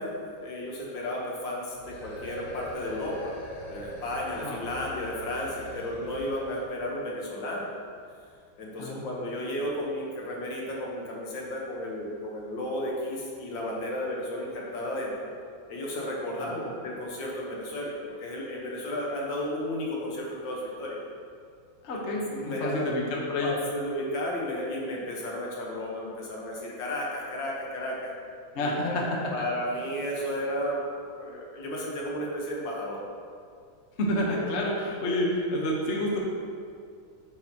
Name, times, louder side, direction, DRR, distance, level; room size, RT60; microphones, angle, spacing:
voice 1, 0.0-3.3 3.7-7.7 8.6-15.3 15.7-17.9 18.2-21.0 21.9-22.9 23.4-28.1 28.6-30.8 31.2-33.0, left 1 dB, 70° left, -3 dB, 1.8 m, -33 dB
sound 1, 1.7-6.7, equal, 85° left, 2.1 m, -42 dB
voice 2, 16.4-16.7 21.8-23.5 28.5-29.5 34.0-36.2, left 1 dB, 45° left, -2 dB, 1.0 m, -29 dB
8.0 x 7.0 x 2.9 m, 2.2 s
omnidirectional pair, 2.2 m